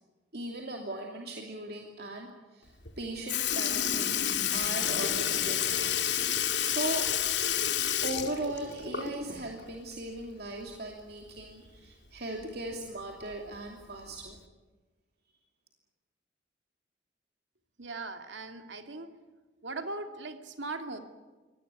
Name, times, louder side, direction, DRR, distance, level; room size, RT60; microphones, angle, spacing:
voice 1, 0.3-7.1 8.0-14.4, right 2 dB, 60° right, 1 dB, 2.8 m, -38 dB
Sink (filling or washing) / Liquid, 2.9-3.0 3.3-9.4 9.7-9.8 11.4-11.5 12.4-12.5 13.3-13.6 14.4-14.5, left 9 dB, 75° left, 2.3 m, -29 dB
voice 2, 17.8-19.1 19.6-21.0, right 3 dB, 80° right, 6 dB, 2.4 m, -39 dB
25.0 x 18.5 x 9.8 m, 1.3 s
head